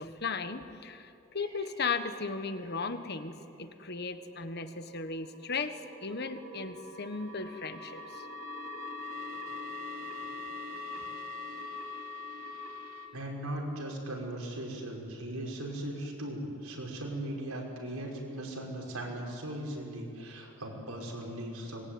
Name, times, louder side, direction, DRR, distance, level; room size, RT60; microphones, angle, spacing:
voice 1, 0.0-8.3, left 4 dB, 50° left, 9 dB, 1.4 m, -36 dB
sound 1, 1.4-3.2 4.0-13.1, left 3 dB, 70° right, 3.1 m, -43 dB
voice 2, 13.1-21.9, right 1 dB, 85° right, 0 dB, 5.7 m, -38 dB
24.5 x 21.0 x 9.7 m, 2.7 s
head